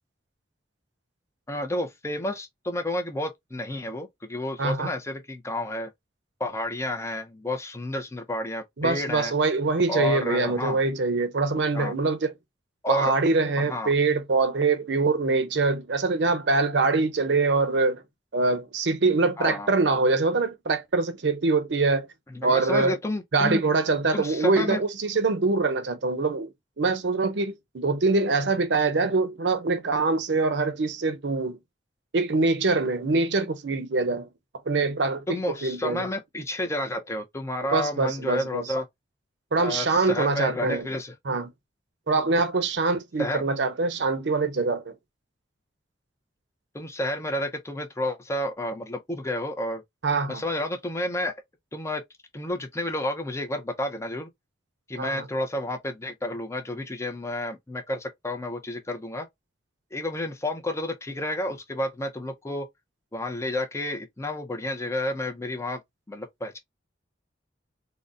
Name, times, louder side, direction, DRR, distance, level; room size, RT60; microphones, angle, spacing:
voice 1, 1.5-5.9 6.4-9.3 9.9-10.8 11.7-11.9 12.8-13.1 13.6-13.9 19.4-19.7 22.3-23.6 24.1-24.8 35.3-38.8 39.6-41.1 43.2-43.4 46.7-49.8 50.3-51.3 51.7-52.0 52.3-54.3 54.9-59.3 59.9-62.7 63.1-65.8 66.1-66.6, left 1 dB, 15° left, 0.5 m, -30 dB
voice 2, 4.6-4.9 8.8-12.3 12.9-18.0 18.3-22.1 22.4-23.0 23.3-31.6 32.1-34.3 34.7-36.1 37.7-38.7 39.5-40.9 41.3-41.5 42.1-44.9 50.0-50.4 55.0-55.3, right 3 dB, 70° right, 0.6 m, -24 dB
3.8 x 2.1 x 2.4 m
head